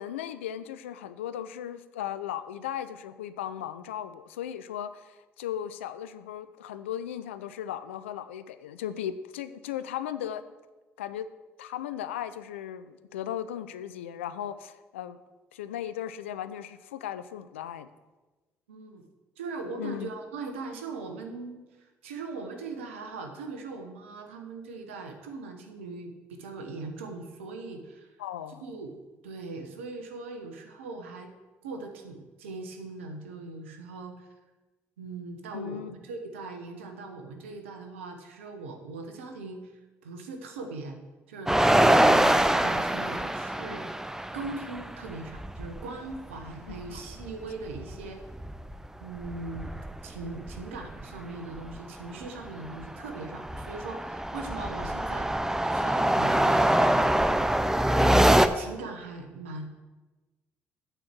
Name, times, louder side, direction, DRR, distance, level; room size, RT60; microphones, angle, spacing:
voice 1, 0.0-10.5 11.0-11.3 11.6-15.2 15.5-17.9 19.8-20.1 28.2-28.6 35.5-35.9 46.7-47.0, left 10 dB, 90° left, 13 dB, 0.4 m, -37 dB
voice 2, 18.7-19.0 19.4-28.2 28.6-28.9 29.2-31.3 31.6-34.3 35.0-39.7 40.0-41.0 41.3-44.0 44.3-48.2 49.0-49.7 50.0-55.3 55.6-57.1 57.8-58.3 58.5-59.8, right 3 dB, 90° right, 5 dB, 1.0 m, -40 dB
sound 1, 41.5-45.9 46.1-46.2 46.5-48.9 49.2-51.0 51.6-51.8 52.2-58.5, right 1 dB, 5° right, 0.6 m, -24 dB
8.8 x 4.4 x 7.5 m, 1.2 s
hypercardioid pair, 50°, 7 cm